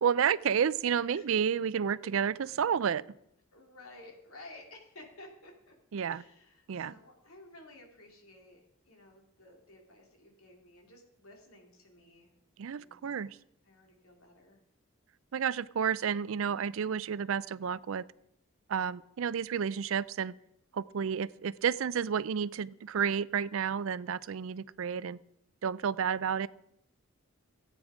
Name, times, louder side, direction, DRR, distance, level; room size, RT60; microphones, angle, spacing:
voice 1, 0.0-3.0 5.9-6.2 6.7-6.9 12.6-13.4 15.3-18.0 18.7-20.3 20.7-25.2 25.6-26.5, right 7 dB, 70° right, 19 dB, 0.4 m, -31 dB
voice 2, 3.5-5.7 6.0-12.3 12.6-13.0 13.6-14.6, left 1 dB, 85° left, 1 dB, 2.8 m, -54 dB
15.0 x 8.7 x 5.0 m, 0.78 s
head